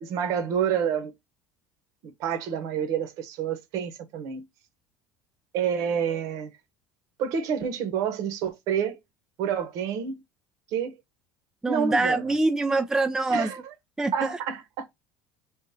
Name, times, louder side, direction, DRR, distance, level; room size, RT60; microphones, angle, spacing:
voice 1, 0.0-1.1 2.0-4.4 5.5-6.5 7.2-9.0 9.4-10.2 10.7-10.9 11.7-12.3 13.3-13.6 14.1-14.9, right 8 dB, 60° right, 1.0 m, -28 dB
voice 2, 11.6-13.5 14.0-14.4, right 2 dB, 10° right, 0.4 m, -24 dB
3.7 x 2.5 x 4.1 m
supercardioid pair, 125°, 6 cm